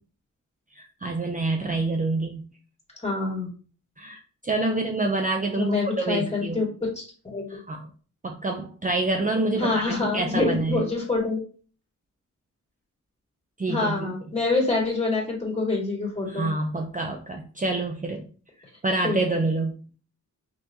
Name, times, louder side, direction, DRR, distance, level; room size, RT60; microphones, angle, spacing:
voice 1, 0.7-2.5 4.0-6.6 7.5-7.9 8.2-10.8 13.6-14.1 16.3-18.3 18.8-19.7, right 2 dB, 25° right, 2 dB, 0.5 m, -27 dB
voice 2, 3.0-3.5 5.6-7.4 9.6-11.4 13.7-16.5 19.0-19.2, left 3 dB, 20° left, -3 dB, 1.9 m, -26 dB
5.5 x 3.0 x 2.7 m, 0.39 s
wide cardioid pair, 100°, 32 cm